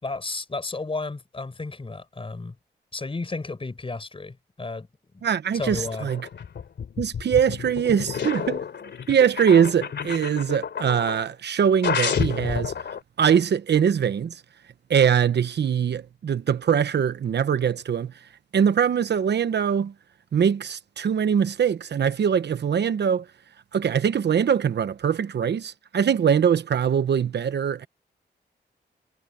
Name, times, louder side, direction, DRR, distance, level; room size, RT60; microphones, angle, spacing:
voice 1, 0.0-2.6 2.9-4.9 5.1-5.2 5.5-6.1, left 3 dB, 30° left, 4.3 m, -33 dB
voice 2, 5.2-6.2 7.0-8.6 9.1-12.7 13.2-14.3 14.9-18.1 18.5-19.9 20.3-23.2 23.7-27.9, right 8 dB, 70° right, 1.0 m, -22 dB
sound 1, 5.5-11.3 11.8-13.0, left 7 dB, 80° left, 2.8 m, -30 dB
wide cardioid pair, 95°, 18 cm